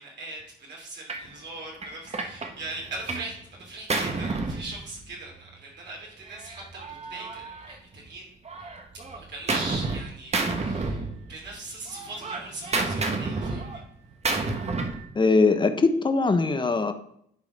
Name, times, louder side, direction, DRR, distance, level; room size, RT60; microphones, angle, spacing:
voice 1, 0.0-8.3 9.1-13.8, right 2 dB, 60° right, -2 dB, 3.0 m, -40 dB
Gunshot gunfire, 1.1-1.3 1.8-3.3 3.6-5.3 6.3-8.1 8.5-10.0 10.3-11.6 11.9-15.1, right 3 dB, 35° right, 1.2 m, -30 dB
voice 2, 15.2-16.9, left 3 dB, 25° left, 8 dB, 0.9 m, -21 dB
10.5 x 3.8 x 5.2 m, 0.69 s
cardioid pair, 90°, 20 cm